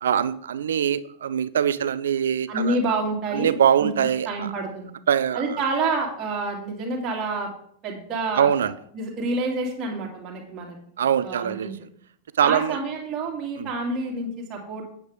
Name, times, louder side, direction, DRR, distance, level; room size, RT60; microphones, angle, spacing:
voice 1, 0.0-2.8 3.3-4.5 5.1-5.4 8.4-8.7 11.0-11.7 12.4-12.8 13.6-13.7, right 9 dB, 65° right, 17 dB, 0.5 m, -22 dB
voice 2, 2.5-3.6 3.8-3.9 4.3-4.9 5.3-7.5 7.8-10.8 11.2-11.7 12.4-14.8, right 3 dB, 30° right, -1 dB, 2.7 m, -28 dB
9.1 x 8.6 x 3.7 m, 0.66 s
figure-of-eight pair, 90°, 0 cm